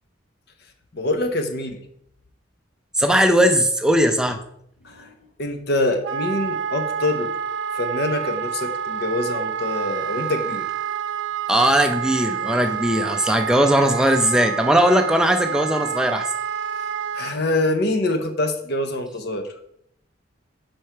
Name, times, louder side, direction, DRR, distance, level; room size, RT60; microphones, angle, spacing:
voice 1, 0.9-1.8 4.8-5.1 5.4-7.3 7.7-10.7 17.1-19.5, left 2 dB, 55° left, 6 dB, 0.6 m, -25 dB
voice 2, 2.9-4.4 11.5-16.3, equal, 5° right, 7 dB, 0.4 m, -19 dB
Wind instrument woodwind instrument, 6.0-17.3, right 7 dB, 65° right, 0.5 m, -28 dB
4.8 x 4.4 x 5.6 m, 0.73 s
head